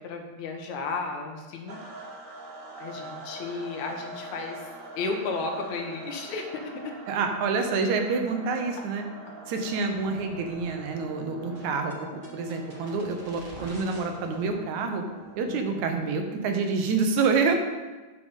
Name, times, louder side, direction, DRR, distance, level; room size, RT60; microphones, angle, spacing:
voice 1, 0.0-1.8 2.8-4.6 5.0-6.9 15.5-15.9, left 3 dB, 75° left, 3 dB, 2.6 m, -33 dB
sound 1, 1.7-16.4, right 2 dB, 50° right, 0.9 m, -44 dB
voice 2, 7.1-9.0 9.5-11.9 12.3-15.0 15.4-17.5, right 4 dB, 80° right, 5 dB, 2.4 m, -27 dB
sound 2, 9.7-16.5, right 1 dB, 20° right, 1.5 m, -48 dB
9.7 x 6.9 x 5.5 m, 1.2 s
omnidirectional pair, 3.3 m